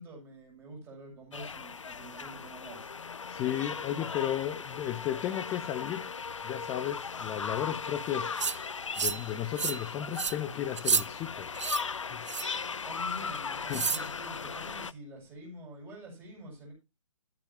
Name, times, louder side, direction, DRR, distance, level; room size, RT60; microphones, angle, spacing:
voice 1, 0.0-2.9 12.8-16.7, equal, 15° right, 7.2 m, -46 dB
sound 1, 1.3-14.9, left 5 dB, 65° left, 0.6 m, -38 dB
voice 2, 3.3-6.1 6.4-11.6 11.9-12.3 13.7-13.9, left 11 dB, 15° left, 0.8 m, -34 dB
sound 2, 8.4-8.6 9.0-9.3 9.6-9.8 10.1-10.4 10.8-11.0 11.6-11.8 12.3-12.6 13.7-14.1, right 6 dB, 60° right, 0.7 m, -30 dB
13.5 x 11.5 x 2.9 m
figure-of-eight pair, 130°, 17 cm